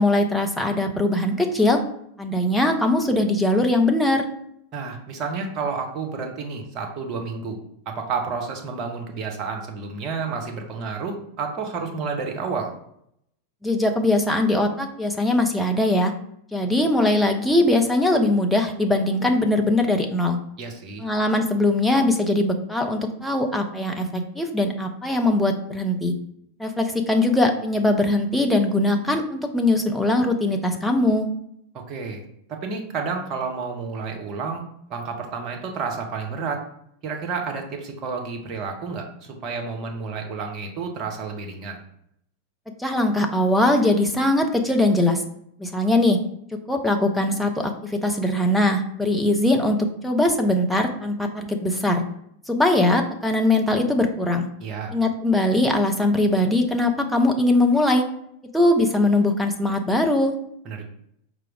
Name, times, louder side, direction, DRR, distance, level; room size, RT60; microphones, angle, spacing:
voice 1, 0.0-1.8 2.2-4.2 13.6-16.1 16.5-20.4 21.0-26.1 26.6-31.3 42.8-45.2 45.6-46.2 46.7-52.0 52.5-54.5 54.9-58.1 58.5-60.3, left 1 dB, 5° left, 2 dB, 0.5 m, -21 dB
voice 2, 4.7-7.6 7.9-12.7 20.6-21.0 31.9-32.2 32.5-36.6 37.0-41.8 54.6-54.9 60.6-60.9, right 5 dB, 35° right, 2 dB, 0.8 m, -30 dB
4.6 x 2.0 x 4.6 m, 0.72 s
figure-of-eight pair, 90°, 0 cm